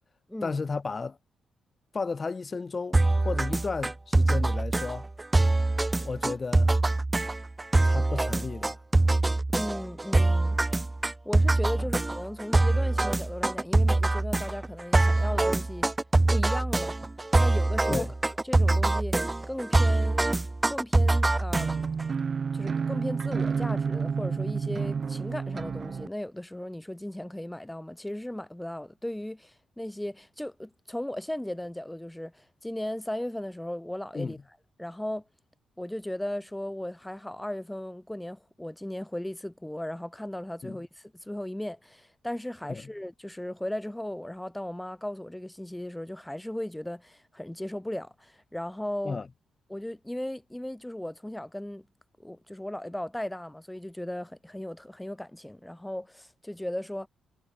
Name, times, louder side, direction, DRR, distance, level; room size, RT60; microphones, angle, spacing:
voice 1, 0.4-1.2 1.9-5.1 6.0-6.7 7.8-8.8 17.9-18.1 34.1-34.4 40.6-40.8 42.7-42.8 49.0-49.3, left 4 dB, 30° left, 7.7 m, -33 dB
sound 1, 2.9-22.0, right 2 dB, 15° right, 0.6 m, -24 dB
voice 2, 9.5-10.6 11.2-15.9 16.3-16.9 17.4-18.1 18.4-20.2 20.7-21.9 22.5-34.4 34.8-35.2 35.8-49.2 49.7-51.9 52.2-57.1, left 1 dB, 5° left, 6.0 m, -36 dB
sound 2, 21.5-26.1, right 5 dB, 45° right, 0.8 m, -30 dB
cardioid pair, 100°, 0 cm